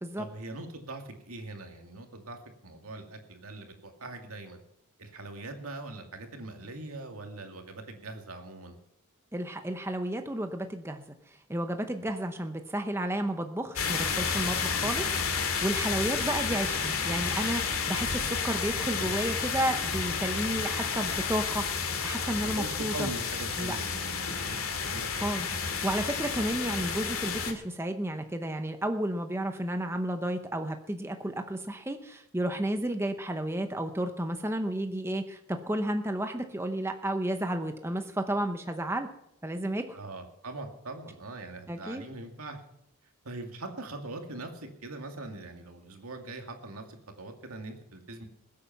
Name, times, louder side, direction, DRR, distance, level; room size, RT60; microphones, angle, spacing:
voice 1, 0.2-4.6 5.0-8.8 12.0-12.1 15.9-16.0 19.0-19.2 22.2-25.3 39.9-42.6 43.2-48.3, right 2 dB, 80° right, 4 dB, 2.3 m, -42 dB
voice 2, 9.3-23.1 23.6-23.8 25.2-39.1 39.4-40.0 41.7-42.0, right 1 dB, 10° right, 7 dB, 0.8 m, -32 dB
sound 1, 13.8-27.5, left 5 dB, 75° left, 2.3 m, -31 dB
20.5 x 8.6 x 5.9 m, 0.79 s
head